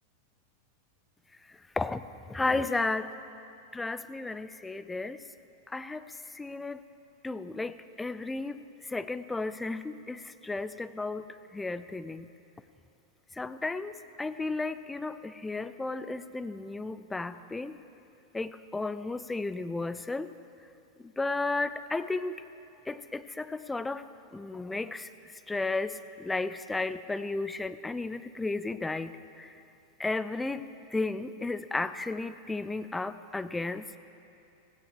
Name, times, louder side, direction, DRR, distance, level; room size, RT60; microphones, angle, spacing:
voice 1, 2.3-3.1 3.7-5.2 5.7-6.8 7.2-8.6 8.9-11.2 11.5-12.3 13.4-13.9 14.2-17.8 18.3-20.3 21.2-22.4 22.9-24.0 24.3-25.1 25.5-29.5 30.0-33.9, left 3 dB, 10° left, 12 dB, 0.5 m, -33 dB
16.5 x 16.0 x 4.7 m, 2.6 s
figure-of-eight pair, 90°, 0 cm